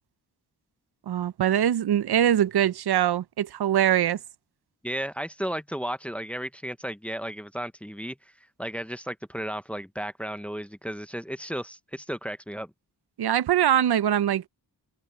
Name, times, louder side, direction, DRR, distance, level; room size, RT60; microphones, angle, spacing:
voice 1, 1.1-4.2 13.2-14.5, right 10 dB, 70° right, 0.6 m, -23 dB
voice 2, 4.8-8.2 8.6-12.7, equal, 5° left, 0.7 m, -34 dB
wide cardioid pair, 120°, 40 cm